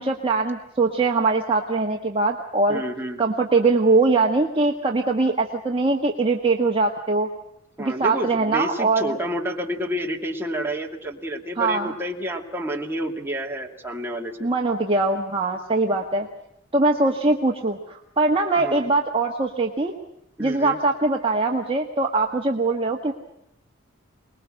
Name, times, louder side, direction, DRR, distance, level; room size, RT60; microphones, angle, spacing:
voice 1, 0.0-2.8 3.2-7.3 7.8-9.2 11.6-11.9 14.4-16.3 16.7-19.9 20.4-23.1, right 3 dB, 25° right, 1 dB, 1.5 m, -22 dB
voice 2, 2.7-3.2 7.8-14.5 18.6-18.8 20.4-20.8, equal, 10° right, 0 dB, 2.5 m, -29 dB
24.0 x 21.0 x 7.7 m, 0.80 s
head